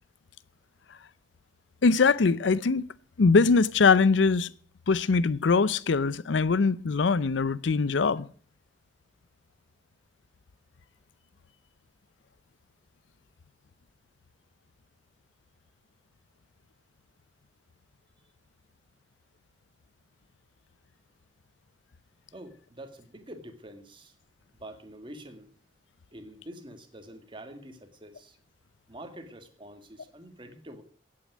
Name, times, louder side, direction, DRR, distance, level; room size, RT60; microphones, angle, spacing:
voice 1, 1.8-2.9 3.2-4.5 4.9-8.3, left 4 dB, 80° left, 0.6 m, -22 dB
voice 2, 22.3-24.2 24.5-25.5 26.1-28.4 28.9-30.8, right 1 dB, 25° right, 2.0 m, -46 dB
16.5 x 8.7 x 6.2 m
head